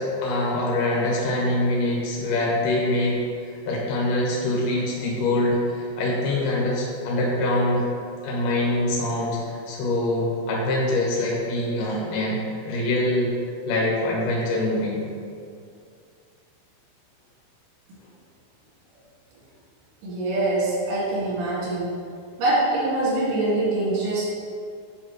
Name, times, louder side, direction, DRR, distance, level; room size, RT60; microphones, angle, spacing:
voice 1, 0.0-3.2 3.7-7.9 8.2-12.4 12.6-13.3 13.7-15.0, left 1 dB, 85° left, -4 dB, 1.8 m, -24 dB
voice 2, 20.0-21.9 22.4-24.4, right 2 dB, 75° right, -7 dB, 4.3 m, -24 dB
9.3 x 4.4 x 3.1 m, 2.3 s
omnidirectional pair, 5.6 m